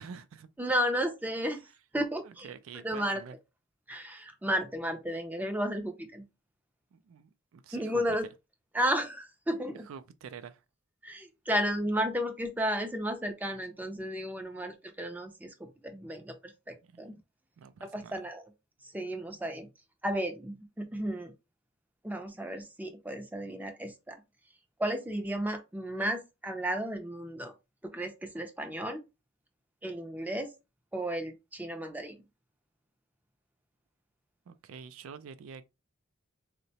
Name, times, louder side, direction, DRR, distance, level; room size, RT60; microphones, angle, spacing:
voice 1, 0.0-0.5 2.2-3.4 6.9-8.2 9.9-10.6 16.8-17.1 17.6-18.2 34.5-35.7, right 6 dB, 85° right, 0.4 m, -47 dB
voice 2, 0.6-1.7 1.9-2.5 2.8-3.2 3.9-6.3 7.7-8.3 8.7-9.9 11.0-17.2 17.8-18.4 18.8-19.7 20.0-21.3 22.0-24.2 24.8-27.5 27.8-29.0 29.8-30.5 30.9-32.2, equal, 10° right, 0.4 m, -33 dB
3.8 x 2.1 x 2.7 m
head